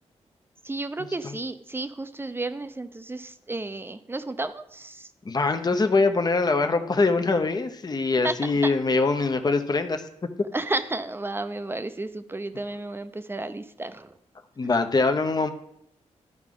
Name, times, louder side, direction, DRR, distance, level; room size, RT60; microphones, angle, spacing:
voice 1, 0.6-5.1 8.2-8.3 8.6-8.7 10.5-14.1, right 2 dB, 20° right, 11 dB, 0.6 m, -32 dB
voice 2, 5.2-10.0 14.6-15.5, left 3 dB, 35° left, 7 dB, 0.8 m, -23 dB
12.0 x 4.8 x 3.8 m, 0.73 s
cardioid pair, 70°, 12 cm